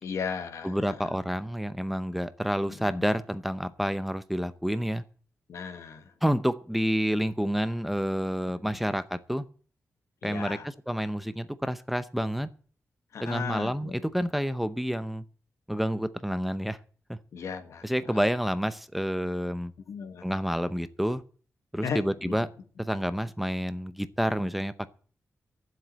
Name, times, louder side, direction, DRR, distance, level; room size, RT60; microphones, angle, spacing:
voice 1, 0.0-1.2 2.8-3.0 5.5-6.1 8.7-8.8 10.2-10.7 13.1-14.0 17.3-18.2 19.9-20.3 21.8-22.4, left 6 dB, 80° left, 1.8 m, -36 dB
voice 2, 0.6-5.0 6.2-9.4 10.2-12.5 13.2-15.2 15.7-16.8 17.1-17.2 17.8-19.7 20.2-21.2 21.7-22.5 22.8-24.9, equal, ahead, 0.7 m, -29 dB
13.0 x 7.7 x 9.2 m
wide cardioid pair, 150°, 5 cm